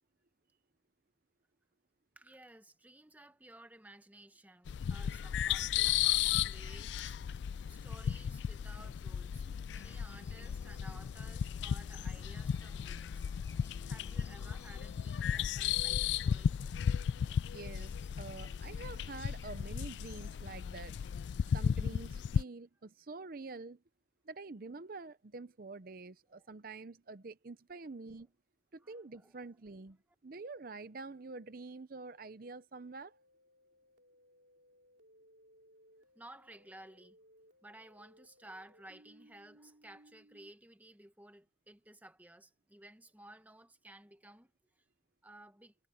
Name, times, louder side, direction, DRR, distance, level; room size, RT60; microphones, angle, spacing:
voice 1, 2.2-7.2 7.7-13.2 13.8-16.6 26.4-26.5 28.8-29.3 36.1-37.2 37.6-44.8 45.2-45.8, right 1 dB, 10° right, 1.2 m, -56 dB
sound 1, 4.7-22.4, left 8 dB, 70° left, 0.3 m, -35 dB
sound 2, 9.7-19.6, left 3 dB, 15° left, 5.9 m, -64 dB
voice 2, 17.5-21.0 21.5-23.8 24.2-28.3 28.7-30.0 30.2-33.2, right 3 dB, 50° right, 0.7 m, -47 dB
sound 3, 33.0-40.5, equal, 70° right, 3.1 m, -64 dB
head